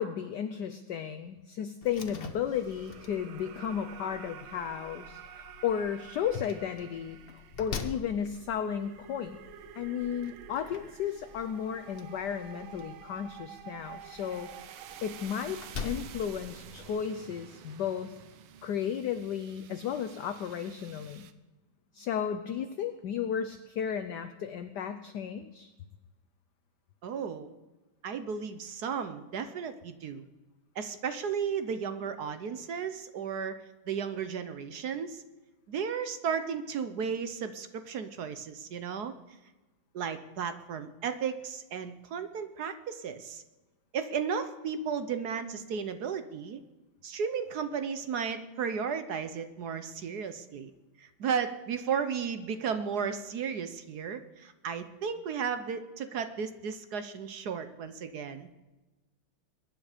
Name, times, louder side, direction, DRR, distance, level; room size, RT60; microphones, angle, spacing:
voice 1, 0.0-7.2 7.6-9.4 9.8-14.5 15.0-18.2 18.6-21.3 21.9-25.7, left 8 dB, 65° left, 9 dB, 1.2 m, -34 dB
Slam, 1.8-16.9, left 5 dB, 40° left, 0.9 m, -46 dB
sound 1, 2.0-21.3, right 9 dB, 85° right, 1.7 m, -50 dB
voice 2, 27.0-27.5 28.0-30.2 30.7-35.2 35.7-39.1 39.9-43.4 43.9-46.6 47.0-50.7 51.0-58.5, right 6 dB, 60° right, 10 dB, 1.2 m, -34 dB
22.5 x 9.9 x 5.0 m, 1.1 s
omnidirectional pair, 2.2 m